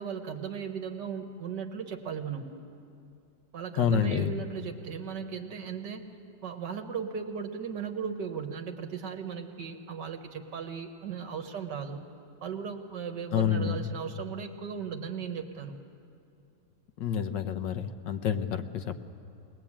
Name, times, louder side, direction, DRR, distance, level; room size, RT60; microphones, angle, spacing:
voice 1, 0.0-2.6 3.5-6.1 6.4-12.1 12.4-15.7, right 6 dB, 70° right, 5 dB, 1.8 m, -37 dB
voice 2, 3.8-4.3 13.3-13.9 17.0-19.0, left 8 dB, 75° left, 8 dB, 1.6 m, -28 dB
21.5 x 20.0 x 8.7 m, 2.5 s
omnidirectional pair, 1.9 m